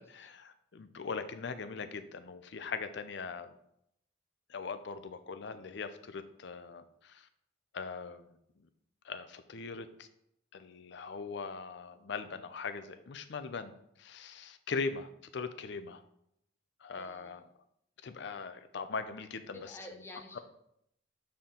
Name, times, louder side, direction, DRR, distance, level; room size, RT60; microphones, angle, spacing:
voice 1, 0.0-3.5 4.5-7.3 7.7-8.3 9.0-10.1 10.5-13.7 14.0-16.0 16.8-17.4 18.0-19.7 20.3-20.4, left 4 dB, 60° left, 10 dB, 0.5 m, -40 dB
voice 2, 16.9-17.4 19.5-20.4, left 2 dB, 15° left, 2 dB, 0.8 m, -49 dB
7.0 x 4.4 x 3.8 m, 0.75 s
head